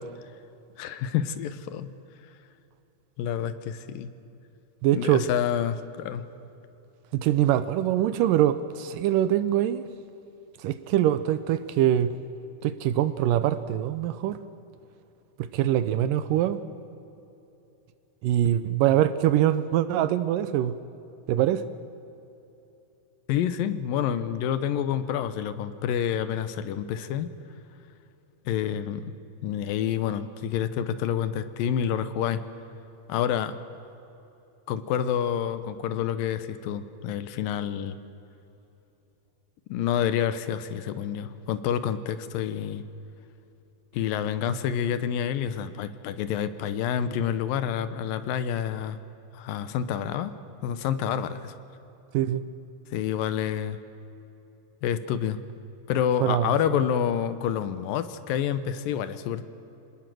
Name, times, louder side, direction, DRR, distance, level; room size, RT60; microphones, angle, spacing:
voice 1, 0.8-1.9 3.2-4.1 4.9-6.3 23.3-27.3 28.5-29.1 29.4-32.4 33.1-33.6 34.7-38.0 39.7-42.9 43.9-49.0 49.3-50.4 50.6-51.5 52.9-53.8 54.8-55.4 55.9-59.4, left 9 dB, 75° left, 13 dB, 2.5 m, -28 dB
voice 2, 4.8-5.3 7.1-9.8 10.6-12.1 12.6-14.4 15.5-16.6 18.2-20.7 21.3-21.6 52.1-52.4 56.2-56.6, right 12 dB, 80° right, 13 dB, 2.1 m, -23 dB
26.0 x 19.5 x 7.6 m, 3.0 s
omnidirectional pair, 4.2 m